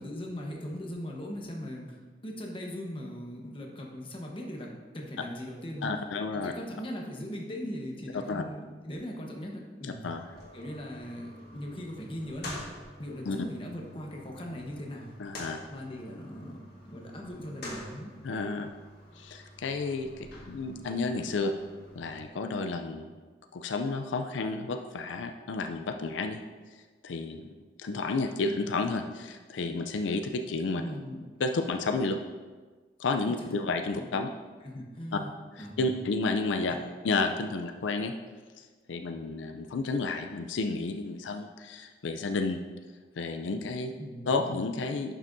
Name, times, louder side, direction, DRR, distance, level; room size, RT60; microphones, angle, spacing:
voice 1, 0.0-2.0 2.2-5.9 6.3-10.1 10.5-12.6 13.0-15.2 15.7-18.1 30.7-31.3 33.3-33.5 33.9-34.1 34.6-35.3 35.6-35.9 36.7-36.9 44.0-44.6, equal, 30° left, 0 dB, 1.1 m, -39 dB
voice 2, 5.8-6.5 8.3-8.4 9.8-10.2 13.3-13.4 15.2-15.6 18.2-18.7 19.2-21.5 22.0-23.1 23.5-26.4 27.0-27.5 27.8-30.8 31.4-32.2 33.0-34.3 35.1-35.2 35.6-36.7 37.0-38.1 38.9-42.6 43.2-43.9 44.3-45.2, left 3 dB, 90° left, 6 dB, 0.5 m, -31 dB
sound 1, 10.2-22.2, left 1 dB, 55° left, 1.8 m, -47 dB
11.0 x 6.2 x 2.6 m, 1.4 s
head